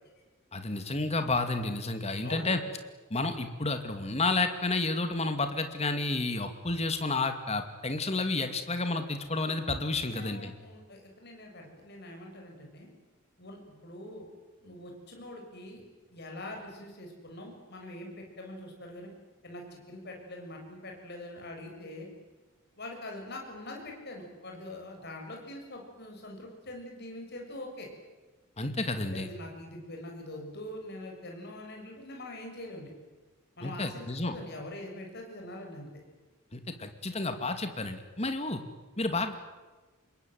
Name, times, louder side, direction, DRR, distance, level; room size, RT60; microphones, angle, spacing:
voice 1, 0.5-2.6 3.1-10.5 28.6-29.3 33.6-34.4 36.5-38.6 39.0-39.3, left 3 dB, 30° left, 7 dB, 2.4 m, -31 dB
voice 2, 2.2-2.6 10.0-12.9 13.4-14.3 14.6-15.8 16.1-19.1 19.4-22.1 22.8-27.9 29.1-32.9 33.6-35.9, left 1 dB, 50° left, 1 dB, 7.0 m, -43 dB
26.5 x 21.5 x 9.4 m, 1.2 s
head